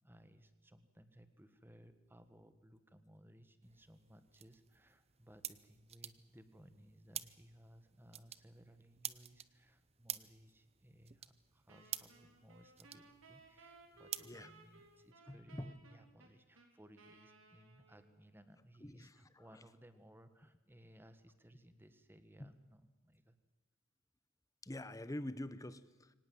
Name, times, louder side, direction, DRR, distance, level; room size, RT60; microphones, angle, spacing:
voice 1, 0.0-23.4, equal, 10° right, 11 dB, 1.4 m, -62 dB
sound 1, 3.6-15.1, right 11 dB, 30° right, 0.7 m, -50 dB
Wind instrument woodwind instrument, 11.7-18.3, right 3 dB, 70° right, 3.9 m, -62 dB
voice 2, 15.3-15.8 18.8-19.6 22.4-22.5 24.6-26.1, left 1 dB, 15° left, 14 dB, 0.9 m, -46 dB
24.0 x 18.0 x 7.7 m, 1.2 s
head